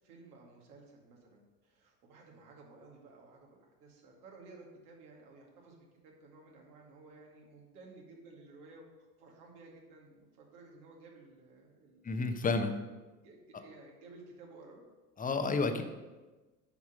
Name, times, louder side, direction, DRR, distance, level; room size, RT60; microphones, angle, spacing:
voice 1, 0.0-5.8 6.0-8.8 9.2-12.3 13.2-14.8, right 3 dB, 65° right, -1 dB, 2.5 m, -55 dB
voice 2, 12.0-12.7 15.2-15.8, left 3 dB, 15° left, 7 dB, 1.0 m, -30 dB
9.0 x 5.9 x 5.5 m, 1.2 s
figure-of-eight pair, 70°, 48 cm